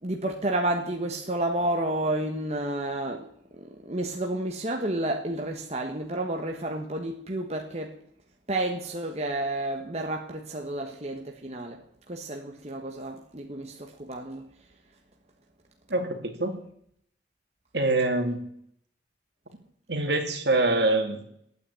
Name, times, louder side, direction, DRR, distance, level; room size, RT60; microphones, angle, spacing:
voice 1, 0.0-8.0 8.5-14.5, right 1 dB, 35° right, 1.3 m, -31 dB
voice 2, 15.9-16.6 17.7-18.4 19.9-21.2, right 2 dB, 65° right, 2.7 m, -25 dB
14.0 x 9.5 x 8.5 m
head